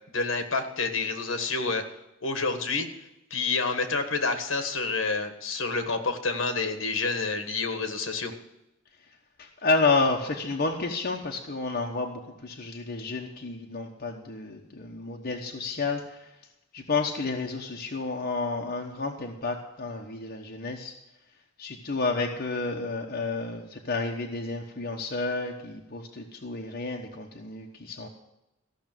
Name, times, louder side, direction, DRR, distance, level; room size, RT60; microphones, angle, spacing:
voice 1, 0.1-1.8 2.2-2.9 3.3-8.3, left 4 dB, 65° left, 7 dB, 1.6 m, -28 dB
voice 2, 9.4-16.4 16.7-21.0 21.6-28.1, left 3 dB, 45° left, 0 dB, 1.1 m, -30 dB
14.5 x 6.1 x 9.1 m, 0.89 s
head